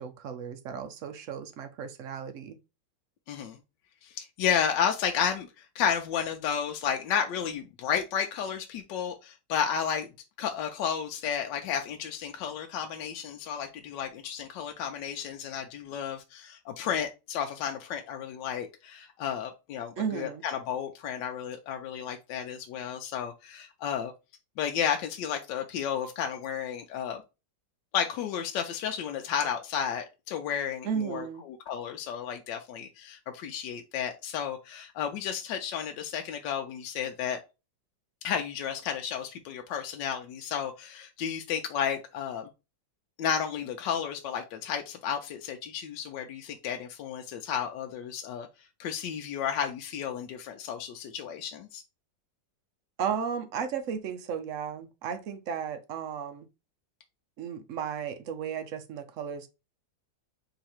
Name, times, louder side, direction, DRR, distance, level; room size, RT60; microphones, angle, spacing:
voice 1, 0.0-2.6 20.0-20.4 30.8-31.4 53.0-56.5 57.4-59.5, right 7 dB, 75° right, 0.7 m, -34 dB
voice 2, 3.3-3.6 4.0-10.1 10.4-24.1 24.6-27.2 27.9-37.4 38.2-42.5 43.2-48.5 48.8-51.8, left 8 dB, 80° left, 1.2 m, -32 dB
3.9 x 2.8 x 4.3 m
omnidirectional pair, 2.0 m